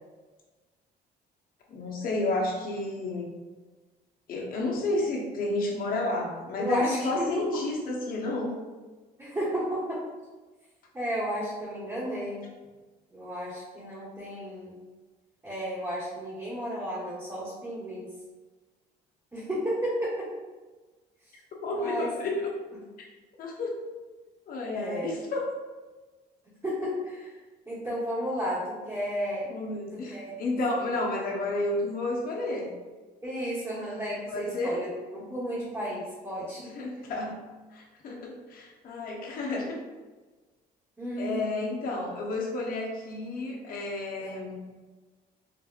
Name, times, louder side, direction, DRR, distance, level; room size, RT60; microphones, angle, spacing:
voice 1, 1.7-3.3 4.3-8.6 21.6-22.5 23.4-23.9 24.5-25.5 29.5-32.7 34.3-34.8 36.7-37.4 37.7-39.8 41.2-44.6, left 2 dB, 60° left, -2 dB, 0.9 m, -31 dB
voice 2, 6.6-7.5 9.2-10.0 10.9-12.4 13.1-14.7 15.4-18.1 19.3-20.3 21.7-22.1 24.7-25.1 26.6-27.3 27.7-29.4 29.9-30.3 33.2-36.7 41.0-41.5 44.2-44.4, equal, 15° right, -11 dB, 1.3 m, -33 dB
4.5 x 2.5 x 2.5 m, 1.3 s
cardioid pair, 110°, 17 cm